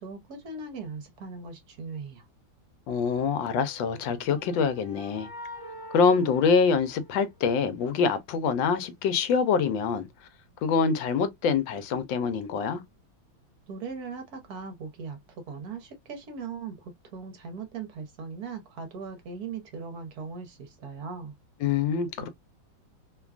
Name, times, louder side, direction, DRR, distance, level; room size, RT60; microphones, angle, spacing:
voice 1, 0.0-2.3 13.7-21.3 22.2-22.3, right 5 dB, 60° right, 1.1 m, -39 dB
voice 2, 2.9-5.3 5.9-10.1 10.6-12.8 21.6-22.3, left 5 dB, 75° left, 1.3 m, -25 dB
sound 1, 3.7-7.6, equal, 30° left, 0.4 m, -45 dB
3.2 x 2.2 x 2.3 m
omnidirectional pair, 2.1 m